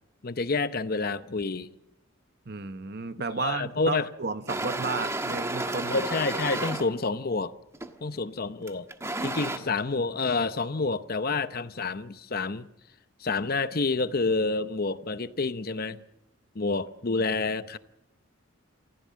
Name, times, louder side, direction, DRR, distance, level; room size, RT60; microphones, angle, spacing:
voice 1, 0.2-1.7 3.4-4.1 5.9-7.5 8.0-8.9 9.2-12.7 13.2-16.0 16.5-17.8, left 3 dB, 50° left, 0.8 m, -28 dB
voice 2, 2.5-6.0, right 4 dB, 50° right, 1.0 m, -33 dB
sound 1, 4.5-6.9 7.7-8.0 8.7-9.6, right 2 dB, 15° right, 1.4 m, -31 dB
28.0 x 15.5 x 7.5 m
head